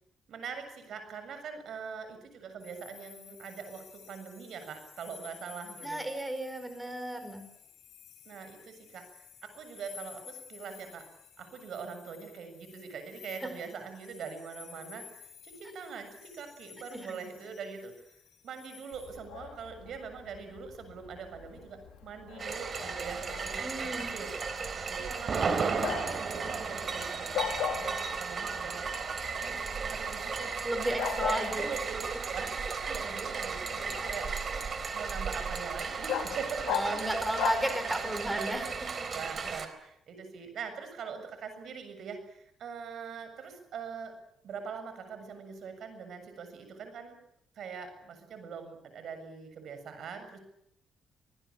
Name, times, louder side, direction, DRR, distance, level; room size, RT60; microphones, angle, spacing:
voice 1, 0.3-6.0 8.2-11.1 11.4-15.2 15.4-18.2 18.4-24.3 24.9-28.8 29.4-34.3 34.9-37.1 38.2-38.7 39.1-44.1 44.4-47.2 47.5-50.4, right 6 dB, 65° right, 8 dB, 7.2 m, -43 dB
sound 1, 2.6-19.2, left 9 dB, 70° left, 6.8 m, -53 dB
voice 2, 5.8-7.4 16.9-17.1 23.6-24.1 30.6-31.7 36.7-38.7, right 1 dB, 10° right, 8 dB, 4.8 m, -33 dB
Bark, 18.9-38.3, left 9 dB, 85° left, 3.7 m, -40 dB
sound 2, 22.4-39.7, right 5 dB, 45° right, 3.9 m, -35 dB
25.5 x 20.5 x 8.7 m, 0.77 s
cardioid pair, 90°, 0 cm